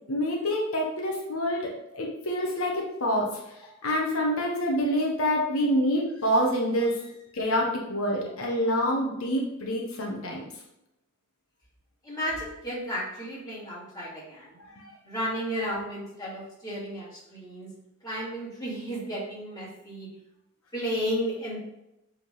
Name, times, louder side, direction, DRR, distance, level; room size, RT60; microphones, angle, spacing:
voice 1, 0.1-10.5 14.6-14.9, equal, 80° left, -1 dB, 1.1 m, -27 dB
voice 2, 12.0-14.6 15.0-17.7 18.0-20.1 20.7-21.6, equal, 20° left, -7 dB, 2.6 m, -33 dB
7.6 x 3.9 x 3.8 m, 0.87 s
head